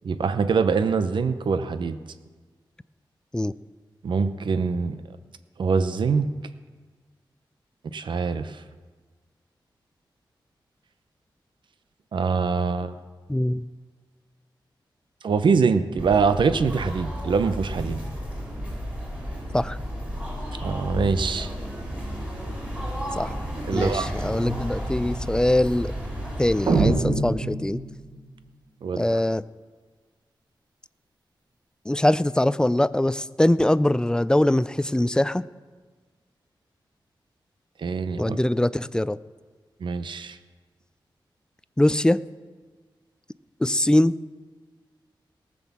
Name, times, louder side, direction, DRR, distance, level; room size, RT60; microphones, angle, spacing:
voice 1, 0.0-2.0 4.0-5.0 5.6-6.3 7.9-8.5 12.1-12.9 15.2-18.0 20.6-21.5 23.7-24.1 28.8-29.0 37.8-38.4 39.8-40.4, right 5 dB, 70° right, 11 dB, 0.7 m, -24 dB
voice 2, 13.3-13.6 19.5-19.8 23.1-23.3 23.7-25.9 26.4-27.8 28.9-29.4 31.9-35.4 38.2-39.2 41.8-42.2 43.6-44.1, left 1 dB, 10° left, 17 dB, 0.3 m, -22 dB
sound 1, 16.0-26.9, equal, 15° right, 4.9 m, -32 dB
sound 2, 26.7-28.3, right 3 dB, 55° right, 1.1 m, -24 dB
18.0 x 6.2 x 7.2 m, 1.4 s
wide cardioid pair, 105°, 8 cm